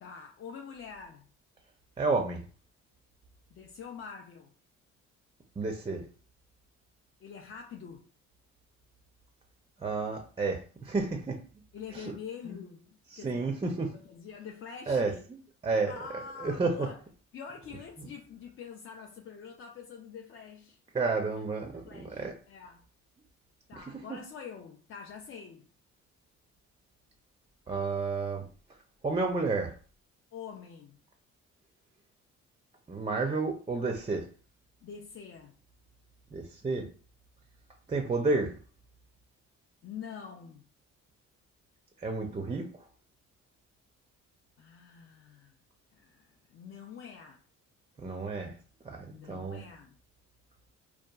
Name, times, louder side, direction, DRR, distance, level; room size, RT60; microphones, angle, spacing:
voice 1, 0.0-1.3 3.5-4.5 7.2-8.1 11.7-13.6 13.9-15.2 15.9-17.0 17.3-20.8 21.4-21.5 21.8-22.8 23.7-25.7 30.3-31.0 34.8-35.5 39.8-40.6 44.6-45.6 45.9-47.4 49.1-50.0, left 6 dB, 45° left, 0.4 m, -45 dB
voice 2, 2.0-2.4 5.6-6.0 9.8-11.4 11.9-12.1 12.5-12.6 13.1-13.9 14.9-15.1 15.6-16.9 18.0-18.1 20.9-22.3 23.8-24.2 27.7-28.4 29.0-29.7 32.9-34.3 36.3-36.9 37.9-38.5 42.0-42.7 48.0-48.5 48.8-49.6, right 3 dB, 20° right, 0.4 m, -31 dB
2.8 x 2.2 x 2.3 m
cardioid pair, 90°, 30 cm